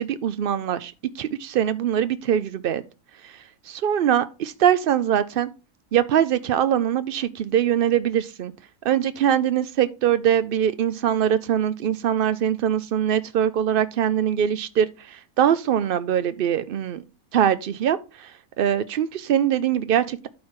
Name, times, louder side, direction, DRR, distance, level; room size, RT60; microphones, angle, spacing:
voice 1, 0.0-2.8 3.2-5.5 5.9-8.5 8.8-17.0 17.3-20.3, right 9 dB, 80° right, 0.4 m, -23 dB
12.0 x 4.4 x 3.7 m
omnidirectional pair, 1.6 m